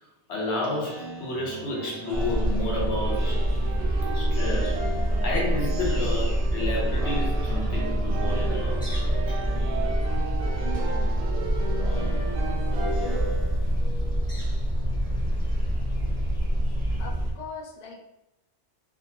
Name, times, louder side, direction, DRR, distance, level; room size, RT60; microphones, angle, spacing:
voice 1, 0.3-3.4 4.1-8.9 9.3-9.5, left 1 dB, 75° left, -4 dB, 1.1 m, -31 dB
Speech synthesizer, 0.8-3.9 4.3-5.3 5.7-6.7 7.0-7.9 8.2-9.1 9.5-10.3 10.6-14.1, right 2 dB, 45° right, 0.6 m, -42 dB
sound 1, 1.3-13.2, right 3 dB, 75° right, 0.8 m, -36 dB
sound 2, 2.1-17.3, equal, 5° left, 0.5 m, -26 dB
voice 2, 17.0-18.0, left 5 dB, 55° left, -2 dB, 0.5 m, -40 dB
2.8 x 2.3 x 2.7 m, 0.89 s
omnidirectional pair, 1.2 m